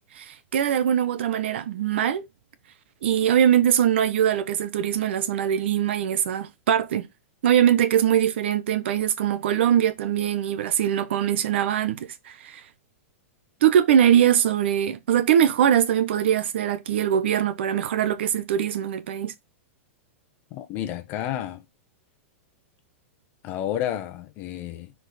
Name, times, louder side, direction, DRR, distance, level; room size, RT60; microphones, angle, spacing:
voice 1, 0.1-2.3 3.0-7.1 7.4-12.6 13.6-19.3, right 10 dB, 55° right, 0.8 m, -22 dB
voice 2, 20.5-21.6 23.4-24.9, left 11 dB, 25° left, 1.1 m, -31 dB
6.0 x 4.8 x 4.1 m
supercardioid pair, 175°, 7 cm